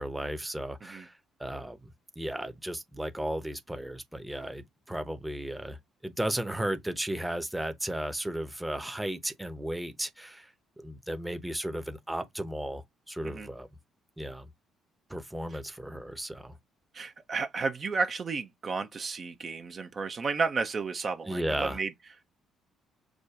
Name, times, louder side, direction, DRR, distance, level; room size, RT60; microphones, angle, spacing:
voice 1, 0.0-1.9 2.2-5.8 6.0-13.7 14.2-14.5 15.1-16.6 21.3-21.8, right 1 dB, 10° right, 0.7 m, -35 dB
voice 2, 16.9-21.9, right 4 dB, 40° right, 0.5 m, -32 dB
4.9 x 2.2 x 2.4 m
figure-of-eight pair, 45°, 0 cm